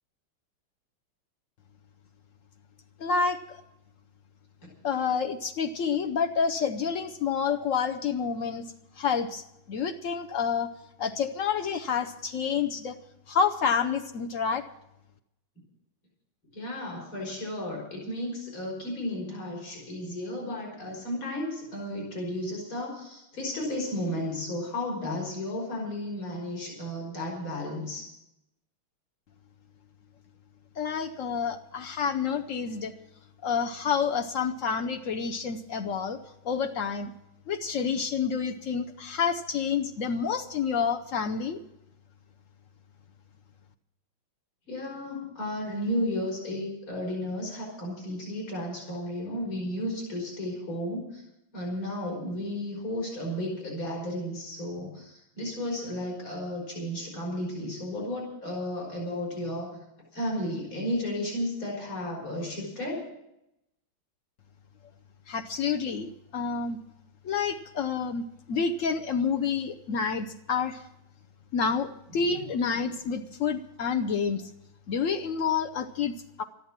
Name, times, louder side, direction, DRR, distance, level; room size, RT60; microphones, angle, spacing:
voice 1, 3.0-3.6 4.8-8.6 9.0-10.7 11.0-13.0 13.3-14.6 30.8-32.9 33.4-36.2 36.4-37.1 37.5-41.6 65.3-66.8 67.2-70.8 71.5-74.5 74.9-76.4, left 6 dB, 80° left, 7 dB, 0.7 m, -28 dB
voice 2, 16.5-28.1 44.7-51.2 51.5-59.7 60.1-63.0 72.1-72.3, left 1 dB, 65° left, -3 dB, 6.0 m, -33 dB
13.5 x 11.0 x 7.3 m, 0.83 s
omnidirectional pair, 2.4 m